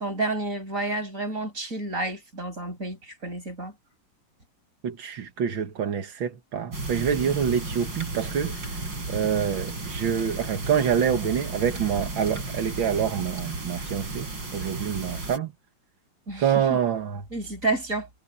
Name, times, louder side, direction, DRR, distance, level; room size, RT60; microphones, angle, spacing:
voice 1, 0.0-3.7 16.3-16.8 17.3-18.1, right 2 dB, 40° right, 6.4 m, -30 dB
voice 2, 4.8-8.8 9.1-15.5 16.4-17.2, right 8 dB, 85° right, 2.3 m, -26 dB
sound 1, 6.7-15.4, right 2 dB, 70° right, 6.1 m, -34 dB
omnidirectional pair, 2.1 m